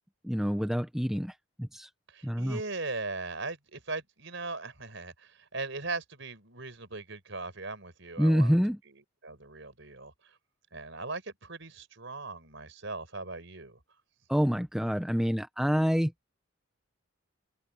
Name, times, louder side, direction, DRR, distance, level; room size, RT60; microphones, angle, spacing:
voice 1, 0.2-1.3 1.6-1.9 2.2-2.6 8.2-8.8 14.3-16.1, equal, ahead, 0.7 m, -27 dB
voice 2, 2.1-8.6 8.8-10.4 10.7-13.8, right 3 dB, 65° right, 5.1 m, -39 dB
head